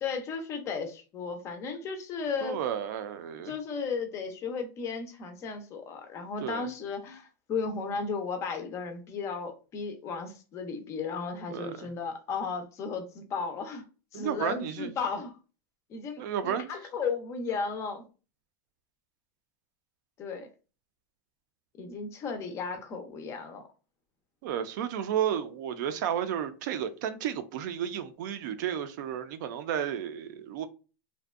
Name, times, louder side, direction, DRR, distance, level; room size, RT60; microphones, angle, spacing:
voice 1, 0.0-2.6 3.5-13.8 14.1-15.4 15.9-18.0 20.2-20.5 21.8-23.7, left 5 dB, 25° left, 0.4 m, -35 dB
voice 2, 2.4-3.5 6.4-6.6 11.5-11.9 14.1-14.9 16.2-16.7 24.4-30.7, right 9 dB, 65° right, 0.4 m, -32 dB
2.6 x 2.1 x 2.3 m
supercardioid pair, 155°, 11 cm